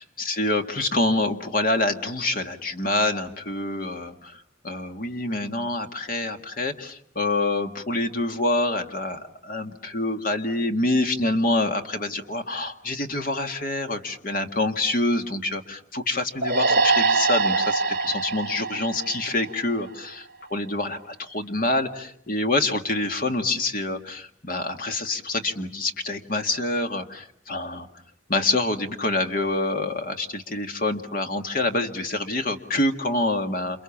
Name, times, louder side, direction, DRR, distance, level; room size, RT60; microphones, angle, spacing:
voice 1, 0.0-27.9 28.3-33.8, left 2 dB, 45° left, 6 dB, 2.0 m, -26 dB
sound 1, 16.4-19.9, right 4 dB, 50° right, 2.5 m, -23 dB
29.0 x 28.5 x 7.3 m, 0.67 s
head